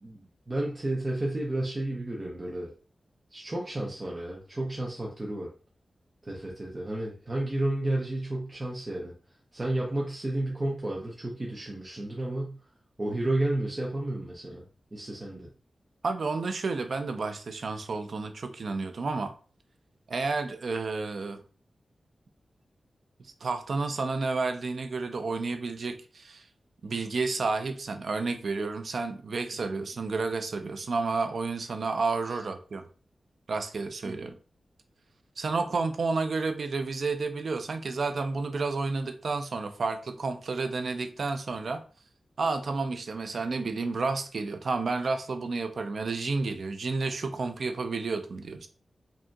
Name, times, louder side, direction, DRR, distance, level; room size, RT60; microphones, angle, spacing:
voice 1, 0.0-2.7 3.3-5.5 6.2-9.1 9.5-12.6 13.0-14.6 14.9-15.5 32.3-32.4 34.0-34.3, right 1 dB, 30° right, -3 dB, 0.8 m, -32 dB
voice 2, 16.0-19.3 20.1-21.4 23.2-26.4 26.8-32.8 33.5-34.3 35.4-41.8 42.4-48.7, right 3 dB, 70° right, 7 dB, 0.5 m, -31 dB
5.1 x 2.8 x 2.3 m, 0.37 s
wide cardioid pair, 115°, 0 cm